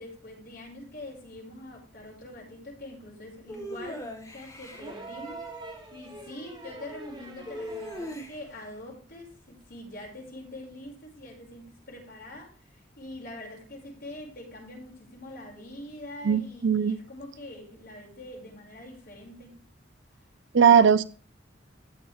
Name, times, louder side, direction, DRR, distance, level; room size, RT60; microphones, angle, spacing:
voice 1, 0.0-19.6 20.1-20.2, left 1 dB, 55° left, 5.4 m, -44 dB
sound 1, 3.5-4.9 7.5-8.6, equal, 15° left, 1.8 m, -39 dB
sound 2, 4.7-8.3 9.6-9.7, right 2 dB, 25° right, 3.0 m, -43 dB
voice 2, 16.2-16.9 20.5-21.0, right 7 dB, 65° right, 0.5 m, -19 dB
16.0 x 6.3 x 3.4 m
head